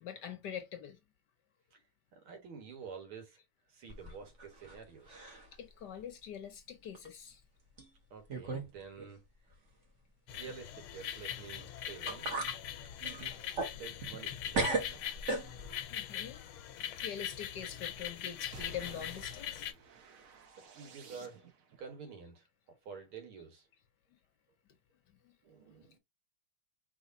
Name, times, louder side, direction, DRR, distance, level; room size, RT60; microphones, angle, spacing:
voice 1, 0.0-1.0 5.6-7.4 15.9-16.4 17.0-19.7 25.2-25.3, left 9 dB, 65° left, 1.2 m, -44 dB
voice 2, 2.1-3.4 3.7-5.1 8.1-9.2 10.3-12.3 13.0-15.0 20.7-21.4 21.8-22.4 22.9-23.7 25.4-26.0, right 6 dB, 80° right, 2.3 m, -49 dB
sound 1, 3.9-4.8 5.1-5.5 6.0-6.1 6.9-7.1 7.8-7.9 8.3-8.7 9.0-9.1 11.6-11.7 12.1-12.6 13.0-14.3 14.5-15.8, right 3 dB, 40° right, 1.3 m, -36 dB
sound 2, 10.3-19.7, left 10 dB, 85° left, 1.6 m, -42 dB
sound 3, 18.5-21.8, right 5 dB, 55° right, 1.0 m, -53 dB
4.9 x 4.0 x 2.6 m
omnidirectional pair, 2.3 m